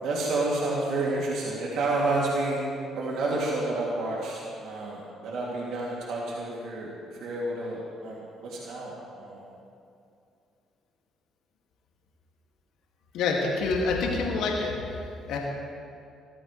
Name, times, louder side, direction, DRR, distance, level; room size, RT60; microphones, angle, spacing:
voice 1, 0.0-2.6 2.9-6.9 7.2-9.4, right 2 dB, 65° right, -4 dB, 2.8 m, -30 dB
voice 2, 13.1-14.7 15.3-15.4, left 3 dB, 70° left, -1 dB, 2.4 m, -26 dB
23.0 x 14.5 x 3.3 m, 2.5 s
hypercardioid pair, 50°, 0 cm